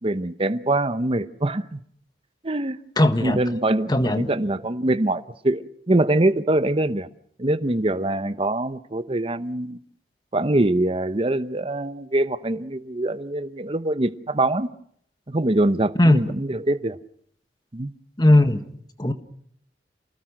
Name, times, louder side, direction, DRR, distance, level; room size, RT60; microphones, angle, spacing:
voice 1, 0.0-1.8 2.4-2.8 3.2-7.1 7.4-9.8 10.3-14.7 15.3-17.0 17.7-17.9, right 1 dB, 30° right, 13 dB, 0.9 m, -23 dB
voice 2, 3.0-3.4 3.9-4.3 16.0-16.2 18.2-18.6 19.0-19.1, left 1 dB, 25° left, 8 dB, 1.4 m, -17 dB
29.0 x 19.0 x 6.5 m, 0.66 s
head